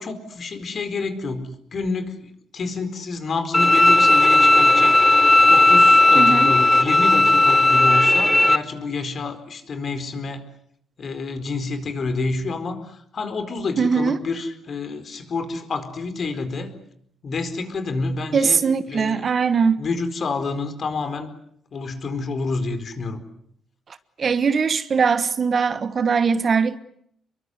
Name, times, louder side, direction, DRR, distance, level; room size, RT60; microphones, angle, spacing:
voice 1, 0.0-5.0 5.5-10.5 11.0-16.8 17.2-18.6 18.9-19.2 19.8-21.3 21.7-23.2, left 3 dB, 45° left, 4.4 m, -28 dB
Bowed string instrument, 3.5-8.6, left 2 dB, 10° left, 1.1 m, -15 dB
voice 2, 6.1-6.5 13.8-14.2 18.3-19.8 24.2-26.8, right 5 dB, 45° right, 1.3 m, -20 dB
28.5 x 23.0 x 8.2 m
cardioid pair, 115°, 0 cm